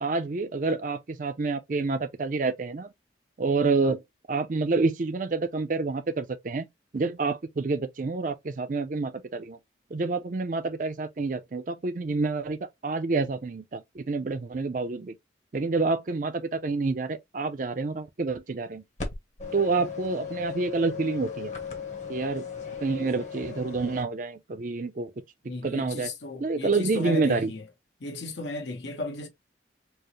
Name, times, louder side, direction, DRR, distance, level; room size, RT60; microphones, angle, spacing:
voice 1, 0.0-2.9 3.4-4.0 4.3-6.7 6.9-9.6 9.9-12.6 12.8-15.1 15.5-18.8 19.5-21.5 22.1-22.5 22.8-25.1 25.6-26.1 26.4-27.5, right 3 dB, 45° right, 0.5 m, -28 dB
sound 1, 19.0-24.0, left 6 dB, 40° left, 0.9 m, -37 dB
voice 2, 25.5-27.6 28.0-29.3, left 2 dB, 85° left, 1.1 m, -35 dB
4.5 x 2.1 x 3.0 m
head